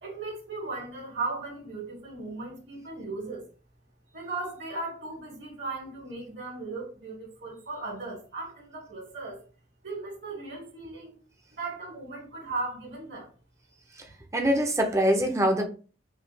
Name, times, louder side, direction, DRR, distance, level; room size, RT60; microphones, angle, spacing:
voice 1, 0.0-3.4 4.1-9.4 9.8-11.2 11.5-13.3, right 3 dB, 75° right, 2.3 m, -37 dB
voice 2, 14.3-15.7, equal, 15° right, 0.7 m, -24 dB
5.6 x 2.4 x 3.3 m
head